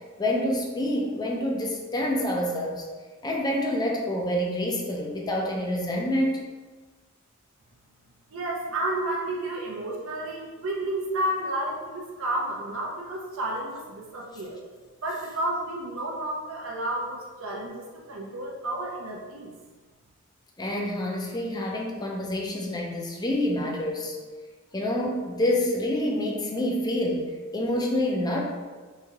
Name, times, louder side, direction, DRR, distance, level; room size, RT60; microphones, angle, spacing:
voice 1, 0.2-2.8 3.2-6.5 20.6-24.2 24.7-27.3 27.5-28.4, left 1 dB, 20° left, -1 dB, 0.5 m, -27 dB
voice 2, 8.3-14.6 15.0-19.5, right 1 dB, 70° right, -2 dB, 0.5 m, -31 dB
3.2 x 2.7 x 3.5 m, 1.4 s
head